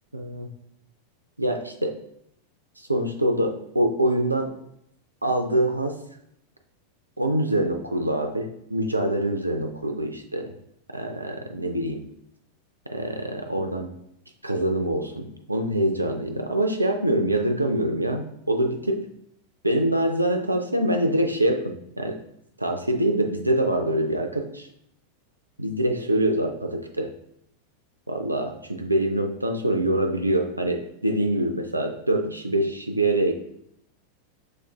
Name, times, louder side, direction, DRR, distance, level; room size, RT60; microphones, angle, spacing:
voice 1, 0.1-0.5 1.4-1.9 2.8-4.5 5.2-6.0 7.2-10.5 10.9-12.0 12.9-13.9 14.4-19.1 19.6-22.2 22.6-24.7 25.6-27.1 28.1-33.3, right 1 dB, 85° right, 4 dB, 0.3 m, -25 dB
6.2 x 2.4 x 2.3 m, 0.74 s
figure-of-eight pair, 90°, 0 cm